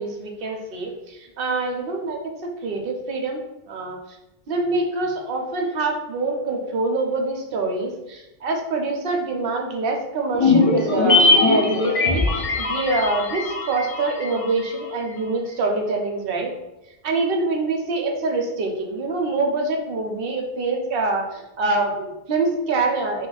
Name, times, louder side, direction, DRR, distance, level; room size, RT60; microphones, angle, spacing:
voice 1, 0.0-2.2 2.6-3.4 3.7-4.0 4.5-16.5 17.0-23.3, right 3 dB, 60° right, 2 dB, 0.7 m, -25 dB
sound 1, 10.3-14.8 15.1-15.2, left 3 dB, 65° left, 0.3 m, -20 dB
2.4 x 2.3 x 3.8 m, 0.97 s
omnidirectional pair, 1.2 m